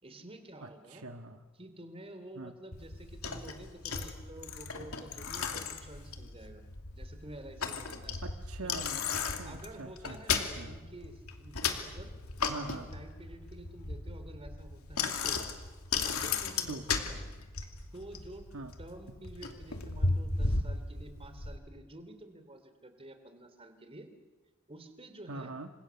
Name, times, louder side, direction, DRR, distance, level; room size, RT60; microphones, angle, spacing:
voice 1, 0.0-1.1 1.6-6.6 6.9-8.2 9.4-12.1 12.7-15.5 16.0-17.2 17.9-18.5 18.8-24.1 24.7-25.5, right 1 dB, 25° right, 8 dB, 3.2 m, -49 dB
voice 2, 0.6-1.4 2.3-2.5 8.2-10.8 12.5-12.9 16.6-16.9 18.5-18.7 25.3-25.7, right 2 dB, 80° right, 6 dB, 1.7 m, -43 dB
Bicycle, 2.7-21.6, left 4 dB, 80° left, 2.7 m, -36 dB
29.0 x 26.5 x 7.1 m, 1.3 s
head